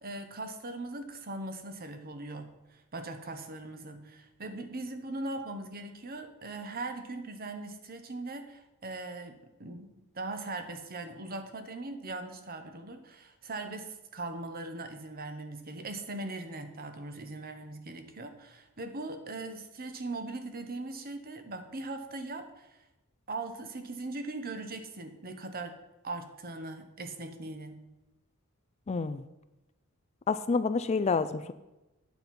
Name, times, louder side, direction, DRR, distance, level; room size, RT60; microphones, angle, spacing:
voice 1, 0.0-9.3 9.6-22.7 23.3-25.8 26.0-27.8, right 2 dB, 45° right, 7 dB, 1.0 m, -40 dB
voice 2, 28.9-29.2 30.3-31.5, left 4 dB, 30° left, 12 dB, 0.3 m, -28 dB
9.1 x 7.5 x 5.3 m, 1.0 s
head